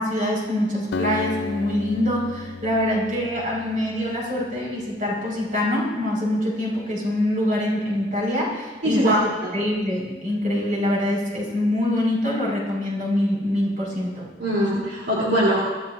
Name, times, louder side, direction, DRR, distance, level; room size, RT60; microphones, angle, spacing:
voice 1, 0.0-9.2 9.5-14.3, left 1 dB, 50° right, -3 dB, 4.9 m, -24 dB
Acoustic guitar, 0.9-4.5, left 4 dB, 70° left, 0.5 m, -33 dB
voice 2, 8.8-9.2 9.4-9.5 14.4-15.6, equal, 70° right, -7 dB, 3.0 m, -22 dB
23.5 x 14.5 x 2.6 m, 1.3 s
head